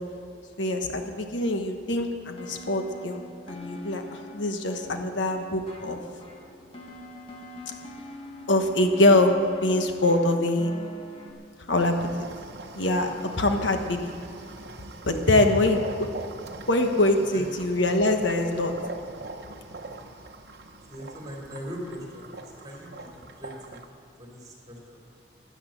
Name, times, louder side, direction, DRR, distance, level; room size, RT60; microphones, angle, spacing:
voice 1, 0.6-6.0 8.5-9.3 9.6-10.7 11.7-12.1 12.8-13.1 13.4-14.1 15.0-15.8 16.7-18.7, left 2 dB, 80° left, 5 dB, 1.3 m, -23 dB
sound 1, 2.4-11.3, left 2 dB, 30° left, 1.7 m, -44 dB
sound 2, 11.8-23.9, right 2 dB, 55° right, 1.0 m, -42 dB
voice 2, 17.1-17.5 20.9-23.8 24.2-25.0, equal, 20° right, -2 dB, 3.5 m, -41 dB
13.5 x 10.5 x 8.0 m, 2.4 s
head